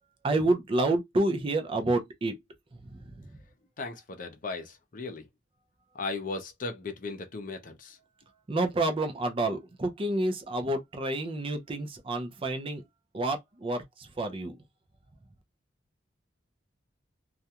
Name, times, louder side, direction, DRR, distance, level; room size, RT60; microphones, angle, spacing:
voice 1, 0.2-2.4 2.7-3.4 8.5-12.8 13.1-14.6, right 2 dB, 30° right, 0.5 m, -29 dB
voice 2, 3.8-5.3 5.9-8.0, left 3 dB, 45° left, 0.6 m, -37 dB
2.4 x 2.1 x 2.8 m
head